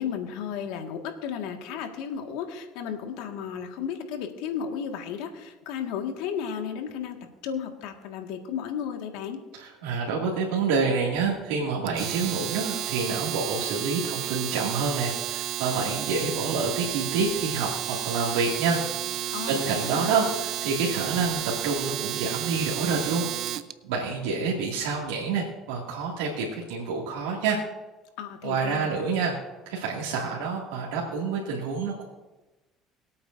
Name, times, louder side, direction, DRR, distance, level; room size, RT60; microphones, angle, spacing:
voice 1, 0.0-7.2 7.4-9.4 19.3-20.2 28.2-29.3, left 7 dB, 80° left, 4 dB, 1.7 m, -34 dB
voice 2, 9.5-18.8 19.2-23.3 23.8-27.6 28.4-29.4 29.7-32.0, right 4 dB, 90° right, -4 dB, 2.2 m, -28 dB
Domestic sounds home sounds, 11.9-23.7, right 12 dB, 65° right, 0.6 m, -32 dB
23.0 x 8.5 x 2.6 m, 1.1 s
supercardioid pair, 85°, 0 cm